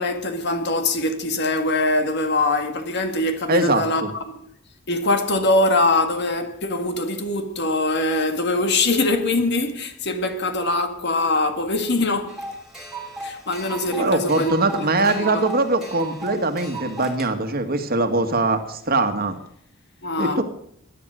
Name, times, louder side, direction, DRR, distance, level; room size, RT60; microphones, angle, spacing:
voice 1, 0.0-4.5 4.9-12.4 13.2-14.5 15.1-15.4 20.0-20.4, left 2 dB, 55° left, 1.9 m, -23 dB
voice 2, 3.5-4.1 14.0-19.4 20.2-20.4, right 2 dB, 45° right, 1.8 m, -22 dB
sound 1, 12.3-17.3, right 2 dB, 5° right, 2.6 m, -36 dB
18.0 x 10.5 x 6.4 m
head